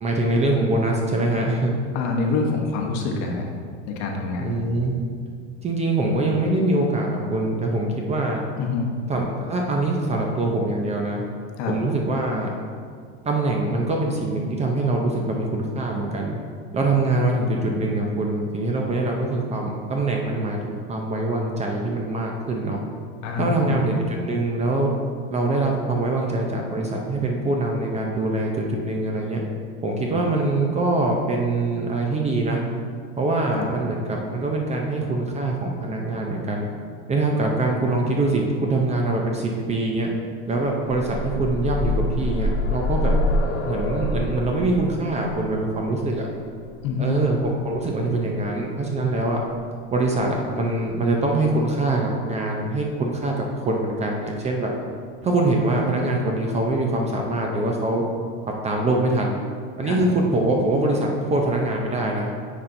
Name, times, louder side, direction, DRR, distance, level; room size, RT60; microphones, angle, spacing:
voice 1, 0.0-1.8 4.4-5.0 5.6-8.4 9.1-11.2 11.7-12.5 13.2-16.4 16.7-22.8 23.4-24.9 25.3-29.4 29.8-32.6 33.2-36.7 37.1-40.1 40.5-43.1 43.6-46.3 47.0-49.4 49.9-54.7 55.2-58.0 58.6-59.4 59.8-62.3, right 2 dB, 20° right, 0 dB, 0.5 m, -23 dB
voice 2, 1.9-3.4 3.9-4.4 8.6-8.9 11.6-11.8 23.2-23.8 33.5-33.7 46.8-47.2 59.8-60.0, left 4 dB, 50° left, 2 dB, 1.0 m, -25 dB
sound 1, 40.6-48.4 49.5-49.6 50.0-50.1, left 1 dB, 85° left, 1.5 m, -27 dB
9.5 x 4.3 x 2.6 m, 2.1 s
supercardioid pair, 130°, 36 cm